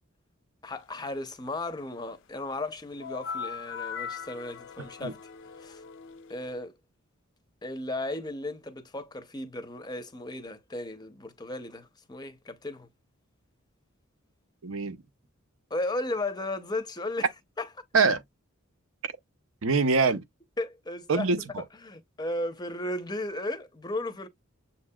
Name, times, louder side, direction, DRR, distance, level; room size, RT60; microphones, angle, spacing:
voice 1, 0.6-5.2 5.6-5.8 6.3-6.8 7.6-12.9 15.7-17.3 17.6-17.7 20.6-21.3 21.7-24.3, left 2 dB, 20° left, 0.6 m, -35 dB
sound 1, 3.0-6.6, left 6 dB, 60° left, 0.5 m, -40 dB
voice 2, 14.6-15.0 17.9-18.2 19.0-19.1 19.6-20.2 21.1-21.6, right 4 dB, 65° right, 0.6 m, -24 dB
7.1 x 2.7 x 2.2 m
head